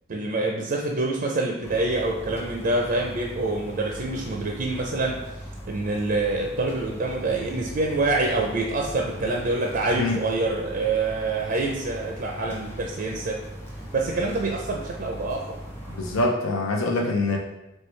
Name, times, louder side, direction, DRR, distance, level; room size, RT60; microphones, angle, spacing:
voice 1, 0.1-5.2 5.7-13.4 13.9-15.5, right 2 dB, 45° right, 0 dB, 0.5 m, -26 dB
sound 1, 1.6-16.3, equal, 10° left, 0.6 m, -39 dB
voice 2, 15.9-17.4, left 2 dB, 80° left, 0 dB, 0.6 m, -24 dB
4.5 x 3.2 x 3.2 m, 0.95 s
head